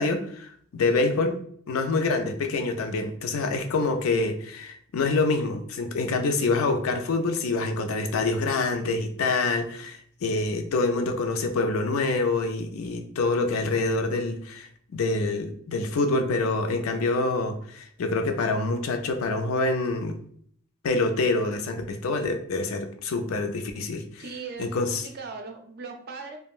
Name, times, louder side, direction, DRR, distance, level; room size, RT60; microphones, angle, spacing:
voice 1, 0.0-1.4 1.7-14.7 14.9-20.2 20.8-24.2 24.6-25.1, left 3 dB, 85° left, 6 dB, 0.4 m, -26 dB
voice 2, 24.2-26.4, right 4 dB, 50° right, 4 dB, 0.4 m, -39 dB
3.6 x 2.0 x 2.4 m, 0.62 s
head